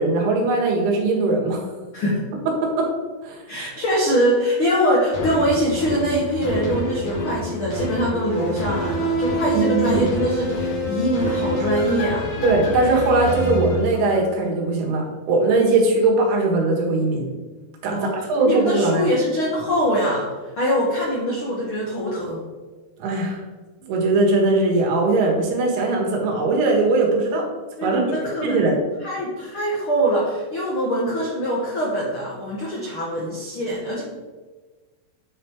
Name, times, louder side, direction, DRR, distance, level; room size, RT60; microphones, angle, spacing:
voice 1, 0.0-1.7 2.5-2.9 3.2-3.4 9.5-10.1 12.4-17.3 17.8-19.1 23.0-23.4 23.9-27.5 27.8-28.0 28.4-28.8, right 2 dB, 80° right, -1 dB, 3.6 m, -20 dB
voice 2, 3.5-12.3 17.9-22.4 27.8-28.7 29.0-34.0, equal, 65° left, -4 dB, 1.3 m, -23 dB
sound 1, 5.1-14.5 15.0-15.1, equal, 50° left, 3.0 m, -27 dB
9.6 x 5.1 x 4.6 m, 1.3 s
omnidirectional pair, 4.6 m